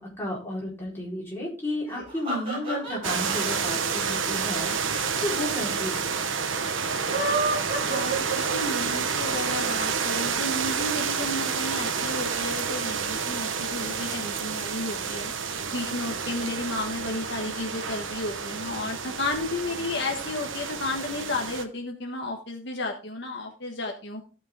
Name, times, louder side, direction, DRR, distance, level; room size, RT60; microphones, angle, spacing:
voice 1, 0.0-4.7 5.2-6.2, left 1 dB, 10° left, -5 dB, 4.4 m, -32 dB
sound 1, 1.9-5.2 5.5-5.6 5.8-5.9 6.9-9.0, right 3 dB, 30° right, 6.6 m, -30 dB
sound 2, 3.0-21.6, right 6 dB, 75° right, 1.1 m, -29 dB
voice 2, 7.9-15.3 15.7-24.2, left 2 dB, 60° left, 1 dB, 1.4 m, -33 dB
15.0 x 6.1 x 3.7 m, 0.34 s
head